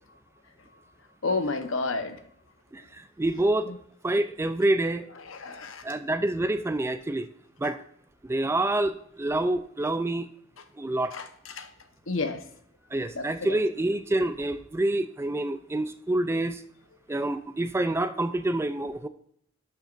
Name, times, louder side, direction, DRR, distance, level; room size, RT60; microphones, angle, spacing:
voice 1, 1.2-2.2 3.7-3.8 5.2-5.8 11.1-11.7 12.1-12.4 13.1-13.6, left 3 dB, 70° left, 8 dB, 1.0 m, -31 dB
voice 2, 2.7-3.7 4.0-5.1 5.8-7.3 7.6-7.8 8.2-8.9 9.2-10.3 10.8-11.1 12.9-16.6 17.1-19.1, right 1 dB, 10° right, 10 dB, 0.3 m, -27 dB
11.5 x 6.3 x 2.5 m, 0.67 s
head